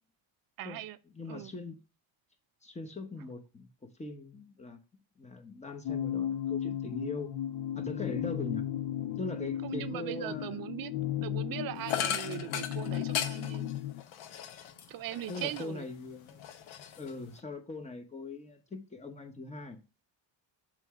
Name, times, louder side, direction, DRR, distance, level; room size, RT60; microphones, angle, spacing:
voice 1, 0.6-1.0 1.3-1.5 9.6-10.9 11.2-13.7 14.9-15.9, right 13 dB, 50° right, 0.5 m, -39 dB
voice 2, 1.1-1.8 2.6-3.7 4.0-4.8 5.2-7.4 7.7-8.6 9.2-10.6 12.3-12.6 15.3-16.4 17.0-19.8, left 3 dB, 15° left, 0.9 m, -40 dB
sound 1, 5.9-14.0, left 11 dB, 60° left, 0.5 m, -35 dB
sound 2, 11.9-15.9 16.2-17.4, left 9 dB, 80° left, 1.0 m, -37 dB
7.5 x 3.2 x 4.6 m
cardioid pair, 140°, 47 cm